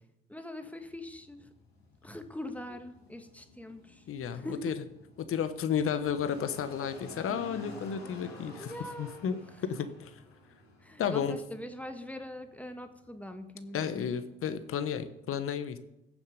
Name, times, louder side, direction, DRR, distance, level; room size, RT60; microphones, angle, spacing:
voice 1, 0.3-1.5 2.0-4.0 4.3-4.7 8.6-9.3 10.8-14.1, left 1 dB, 5° left, 7 dB, 1.6 m, -42 dB
sound 1, 0.8-15.2, left 2 dB, 90° left, 4.9 m, -52 dB
voice 2, 4.1-4.8 5.2-9.4 9.6-10.1 11.0-11.4 13.7-15.8, left 8 dB, 45° left, 11 dB, 1.3 m, -32 dB
16.0 x 7.2 x 5.3 m, 0.88 s
hypercardioid pair, 60°, 31 cm